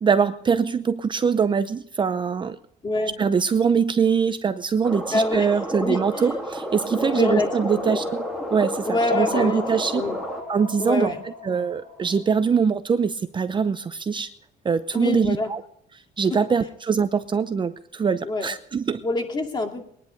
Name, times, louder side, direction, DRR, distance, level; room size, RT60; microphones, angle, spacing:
voice 1, 0.0-2.6 3.2-8.2 8.5-8.9 9.1-10.0 10.5-11.1 11.4-14.3 14.6-15.6 16.2-19.0, right 6 dB, 30° right, 11 dB, 0.6 m, -23 dB
voice 2, 2.8-3.1 5.1-6.4 7.0-8.0 8.9-9.6 9.9-10.2 10.8-11.2 14.9-15.5 16.3-16.5 18.2-18.5 19.0-19.8, left 2 dB, 25° left, 3 dB, 2.5 m, -26 dB
Acqua - Supercollider, 4.8-10.4, right 1 dB, ahead, 2.7 m, -31 dB
sound 1, 7.0-12.4, left 3 dB, 65° left, 7.7 m, -34 dB
20.5 x 10.5 x 5.2 m, 0.67 s
cardioid pair, 110°, 17 cm